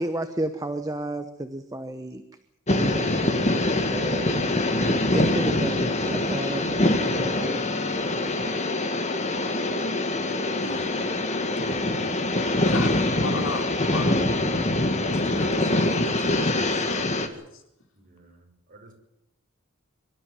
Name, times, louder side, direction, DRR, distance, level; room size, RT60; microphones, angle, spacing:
voice 1, 0.0-2.2 2.7-3.7 3.9-4.4 5.1-7.6, right 1 dB, 15° right, 1.1 m, -32 dB
sound 1, 2.7-17.3, left 2 dB, 35° left, 2.0 m, -24 dB
voice 2, 10.6-10.9 11.5-11.8 12.4-14.2 15.1-17.1 17.5-17.6, left 2 dB, 65° left, 3.8 m, -35 dB
voice 3, 18.0-18.9, right 2 dB, 40° right, 5.7 m, -53 dB
24.0 x 13.0 x 9.7 m
head